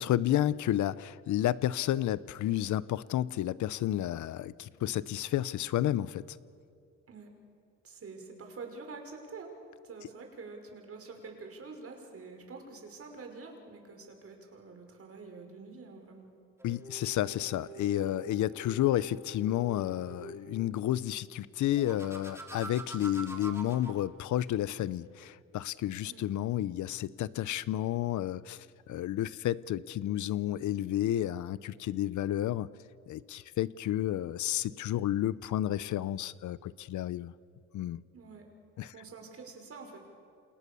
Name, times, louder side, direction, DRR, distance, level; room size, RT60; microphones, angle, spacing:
voice 1, 0.0-6.4 16.6-32.7 33.1-37.3 37.7-38.0 38.8-38.9, left 13 dB, 75° left, 18 dB, 0.8 m, -31 dB
voice 2, 7.8-9.6 9.8-16.3 26.1-26.2 38.1-38.4 38.9-40.0, right 4 dB, 50° right, 4 dB, 5.7 m, -47 dB
sound 1, 16.6-20.4 21.7-24.0, right 1 dB, 10° right, 3.6 m, -46 dB
29.0 x 28.0 x 7.0 m, 2.5 s
cardioid pair, 90°, 30 cm